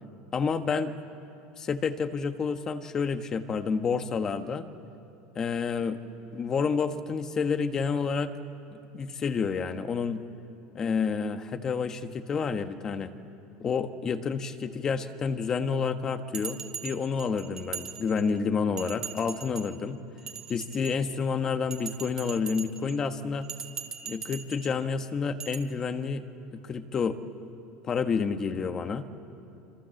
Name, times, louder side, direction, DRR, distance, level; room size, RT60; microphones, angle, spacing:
voice 1, 0.3-0.9 1.6-4.6 5.3-6.0 6.3-8.3 8.9-10.2 10.7-13.1 13.6-20.0 20.5-23.5 24.0-26.2 26.5-27.2 27.8-29.2, left 5 dB, 25° left, 9 dB, 1.3 m, -29 dB
Bell, 16.3-18.4 18.8-19.8 20.2-21.2 21.7-23.0 23.4-24.7 25.4-25.6, right 7 dB, 30° right, 2.1 m, -40 dB
26.0 x 26.0 x 7.8 m, 2.8 s
supercardioid pair, 140°, 2 cm